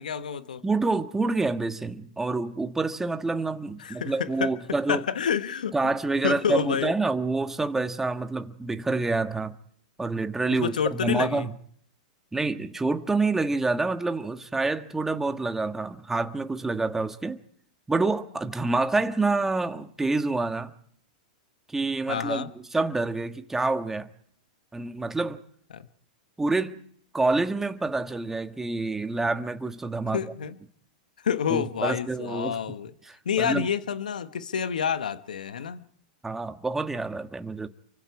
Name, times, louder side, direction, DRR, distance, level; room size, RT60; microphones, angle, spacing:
voice 1, 0.0-0.6 3.8-4.5 4.9-5.7 6.2-6.9 10.5-11.5 22.1-22.5 25.7-25.9 30.1-30.6 31.2-32.9 33.2-35.9, left 7 dB, 80° left, 1.2 m, -28 dB
voice 2, 0.6-5.0 5.7-9.5 10.0-11.5 12.3-17.4 17.9-20.7 21.7-24.1 24.7-25.4 26.4-26.8 27.1-30.2 31.5-32.6 33.1-33.7 36.2-37.7, right 3 dB, 10° right, 1.5 m, -27 dB
29.0 x 24.0 x 4.8 m
hypercardioid pair, 110°, 4 cm